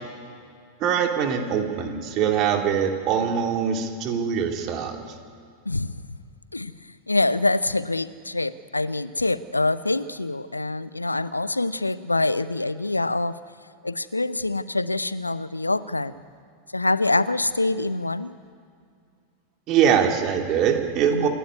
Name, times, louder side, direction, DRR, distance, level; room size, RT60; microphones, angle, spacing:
voice 1, 0.8-5.0 19.7-21.3, right 8 dB, 35° right, 3 dB, 2.8 m, -23 dB
voice 2, 5.6-6.0 6.5-13.3 13.8-16.2 16.7-18.4 21.1-21.3, left 2 dB, 85° left, 16 dB, 0.8 m, -25 dB
28.0 x 12.5 x 9.6 m, 2.3 s
figure-of-eight pair, 90°, 0 cm